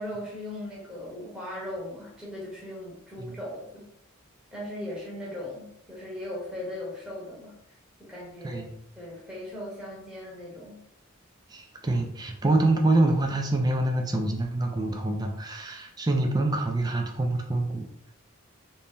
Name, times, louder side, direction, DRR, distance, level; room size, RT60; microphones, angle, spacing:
voice 1, 0.0-3.9 4.5-7.5 8.0-8.6 9.0-10.8, left 1 dB, 5° right, -5 dB, 0.9 m, -38 dB
voice 2, 11.5-17.8, right 2 dB, 20° right, 3 dB, 0.4 m, -26 dB
3.0 x 2.7 x 3.6 m, 0.74 s
head